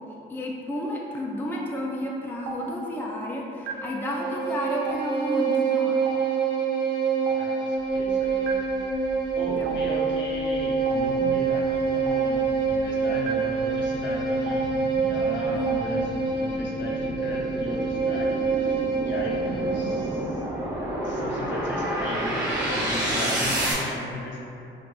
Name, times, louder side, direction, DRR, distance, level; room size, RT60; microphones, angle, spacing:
voice 1, 0.3-6.0 9.5-9.7 15.5-15.8, left 1 dB, 10° left, -2 dB, 0.4 m, -31 dB
Stream, 2.4-2.5 3.6-3.7 4.8-4.9 6.0-6.1 7.2-7.3 8.4-8.5 9.6-9.7 10.8-10.9 12.0-12.1 13.2-13.3 14.4-14.5 15.6-15.7, right 5 dB, 75° right, 0.4 m, -33 dB
Bowed string instrument, 3.7-20.3, right 5 dB, 40° right, 1.4 m, -26 dB
voice 2, 7.3-8.6 9.3-14.8 15.0-16.1 16.3-18.3 18.5-20.4 21.0-24.4, left 1 dB, 65° left, -4 dB, 0.8 m, -36 dB
sound 1, 9.0-9.1 9.6-23.7, right 1 dB, 20° right, 1.3 m, -31 dB
4.6 x 2.2 x 2.5 m, 2.7 s
cardioid pair, 90°, 20 cm